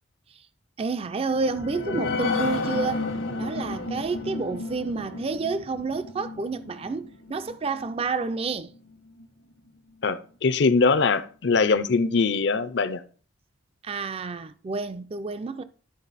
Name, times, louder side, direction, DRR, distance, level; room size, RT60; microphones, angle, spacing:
voice 1, 0.8-3.0 3.4-8.7 13.8-15.6, right 4 dB, 30° right, 0.4 m, -29 dB
sound 1, 1.2-8.3 8.7-8.8 9.2-9.3, left 3 dB, 80° left, 1.2 m, -32 dB
voice 2, 10.0-13.0, left 4 dB, 60° left, 0.6 m, -22 dB
11.5 x 4.7 x 4.1 m
head